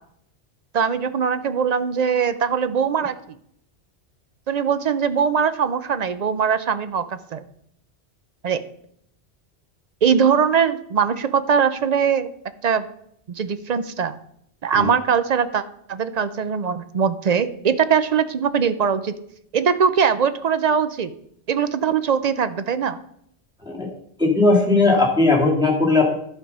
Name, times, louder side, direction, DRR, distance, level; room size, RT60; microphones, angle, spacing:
voice 1, 0.7-3.1 4.5-7.4 8.4-8.6 10.0-12.3 12.6-12.9 13.3-14.2 14.6-15.6 15.9-19.1 19.5-21.1 21.5-23.0, right 7 dB, 50° right, 12 dB, 0.5 m, -21 dB
voice 2, 24.2-26.1, left 3 dB, 5° right, -2 dB, 2.3 m, -18 dB
11.5 x 5.4 x 5.4 m, 0.70 s
omnidirectional pair, 1.1 m